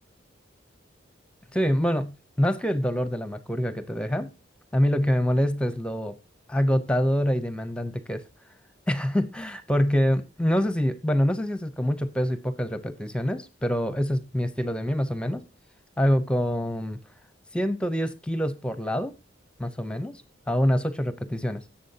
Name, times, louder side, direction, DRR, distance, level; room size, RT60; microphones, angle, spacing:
voice 1, 1.5-4.3 4.7-6.2 6.5-8.2 8.9-15.4 16.0-17.0 17.5-19.1 19.6-21.6, equal, 5° left, 0.7 m, -25 dB
17.5 x 7.3 x 2.8 m
head